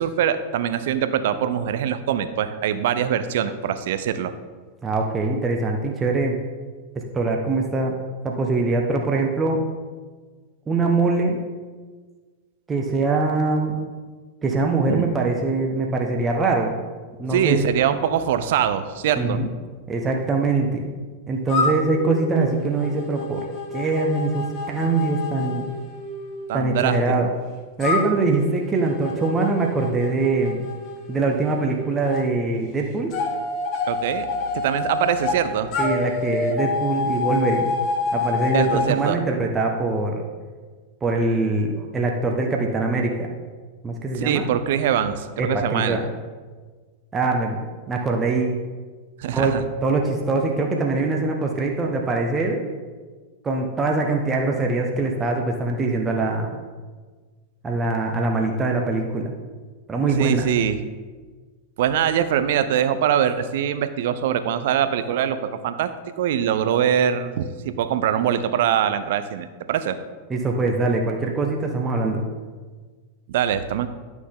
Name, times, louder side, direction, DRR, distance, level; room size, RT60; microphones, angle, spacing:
voice 1, 0.0-4.3 14.9-15.1 17.3-19.4 26.5-27.0 33.9-34.3 34.5-35.7 38.5-39.2 44.1-46.0 49.2-49.6 60.2-60.8 61.8-70.0 73.3-73.9, right 9 dB, 55° right, 12 dB, 0.6 m, -23 dB
voice 2, 4.8-6.4 7.1-8.0 8.2-9.6 10.7-11.4 12.7-13.8 14.4-16.7 17.2-17.6 19.2-19.5 19.9-20.8 21.3-25.7 26.5-27.3 27.8-30.6 31.1-33.1 35.8-37.7 38.1-40.2 41.0-43.3 43.8-44.5 45.4-46.0 47.1-47.6 47.9-48.6 49.3-49.5 49.8-52.6 53.4-56.6 57.6-59.3 59.9-60.4 70.3-72.2, right 3 dB, 20° right, 1 dB, 1.0 m, -23 dB
sound 1, 21.5-27.0 27.8-32.2 33.1-35.4 35.7-38.9, left 4 dB, 40° left, 1.3 m, -28 dB
11.5 x 6.2 x 3.7 m, 1.4 s
figure-of-eight pair, 90°, 0 cm